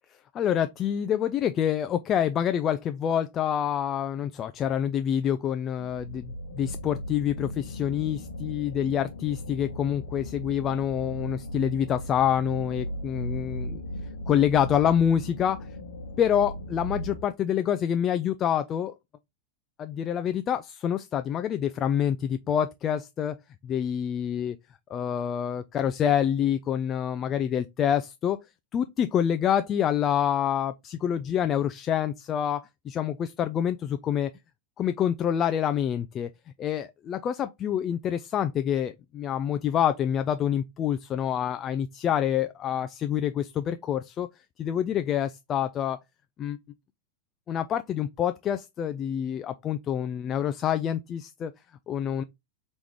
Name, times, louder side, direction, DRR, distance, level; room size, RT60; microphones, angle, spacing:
voice 1, 0.3-13.8 14.3-15.7 16.2-18.9 19.8-23.4 23.6-24.6 24.9-28.4 28.7-34.3 34.8-36.3 36.6-44.3 44.6-46.0 46.4-46.6 47.5-51.5 51.9-52.2, left 9 dB, 30° left, 0.3 m, -27 dB
sound 1, 5.7-17.2, equal, 65° left, 0.9 m, -37 dB
4.7 x 3.0 x 3.5 m
figure-of-eight pair, 90°, 0 cm